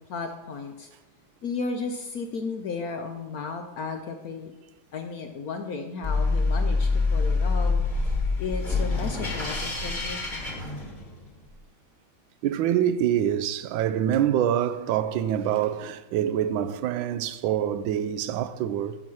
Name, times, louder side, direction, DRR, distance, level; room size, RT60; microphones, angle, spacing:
voice 1, 0.1-0.9 1.4-4.5 4.9-7.8 8.4-10.6, left 4 dB, 65° left, 0.9 m, -34 dB
sound 1, 6.0-11.3, left 3 dB, 25° left, 1.5 m, -26 dB
voice 2, 12.4-19.0, right 10 dB, 80° right, 1.3 m, -25 dB
7.5 x 7.0 x 6.2 m
omnidirectional pair, 2.1 m